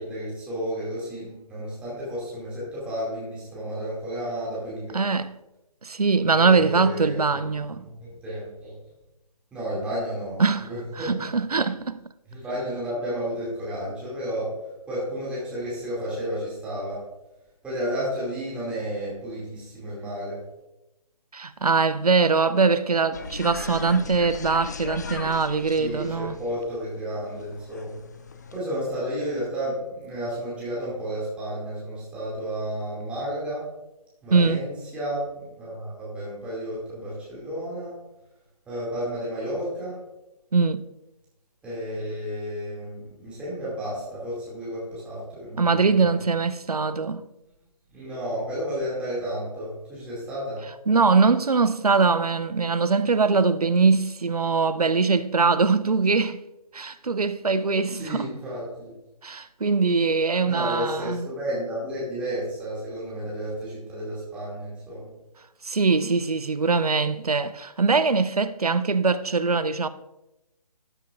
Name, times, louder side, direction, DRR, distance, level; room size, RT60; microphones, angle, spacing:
voice 1, 0.0-5.0 6.3-7.4 7.8-8.7 9.5-11.2 12.3-14.5 14.9-17.0 17.6-20.4 25.8-28.0 28.5-33.7 34.2-38.0 38.7-40.0 41.6-46.3 47.9-50.6 57.9-58.9 60.4-65.1, equal, 5° right, 2.5 m, -32 dB
voice 2, 4.9-5.3 5.8-7.8 10.4-10.7 11.0-12.0 21.3-26.4 34.3-34.6 40.5-40.8 45.6-47.2 50.9-56.4 56.7-58.3 59.2-61.3 65.6-69.9, right 4 dB, 70° right, 0.6 m, -22 dB
sound 1, 23.1-28.6, left 4 dB, 30° left, 0.5 m, -38 dB
12.5 x 8.3 x 2.5 m
figure-of-eight pair, 145°, 20 cm